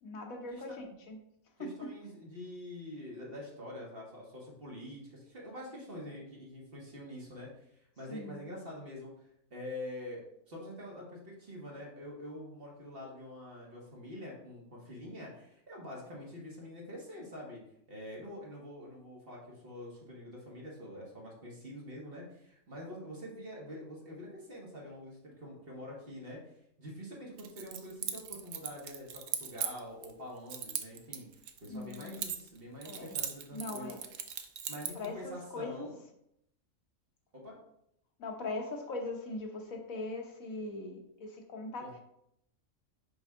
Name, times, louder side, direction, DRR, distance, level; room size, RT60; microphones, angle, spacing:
voice 1, 0.0-1.2 1.6-1.9 8.1-8.5 31.7-32.2 32.8-33.2 33.5-34.0 34.9-35.9 38.2-41.9, left 2 dB, 75° left, 2 dB, 1.4 m, -40 dB
voice 2, 1.6-9.1 9.5-17.6 17.9-26.4 26.8-31.3 31.6-33.9 34.7-36.0 37.3-37.5 41.8-42.0, left 1 dB, 45° right, -3 dB, 1.7 m, -46 dB
Keys jangling, 27.4-30.1 30.5-32.6 32.8-35.1, right 8 dB, 70° right, 1.0 m, -38 dB
5.5 x 5.1 x 3.6 m, 0.76 s
omnidirectional pair, 1.4 m